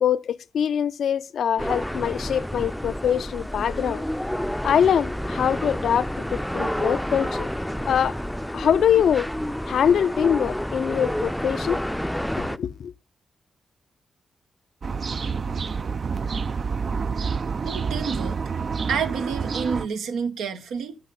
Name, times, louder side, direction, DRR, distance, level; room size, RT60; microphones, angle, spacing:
voice 1, 0.0-4.0 4.6-7.5 7.9-8.2 8.5-9.3 9.7-11.8 12.4-12.9, left 8 dB, 75° left, 0.3 m, -23 dB
sound 1, 1.6-12.6, equal, 5° left, 0.4 m, -29 dB
sound 2, 14.8-19.9, right 5 dB, 55° right, 0.4 m, -28 dB
voice 2, 17.7-18.4 18.9-21.0, right 6 dB, 90° right, 0.7 m, -29 dB
8.8 x 5.7 x 5.4 m
supercardioid pair, 45°, 0 cm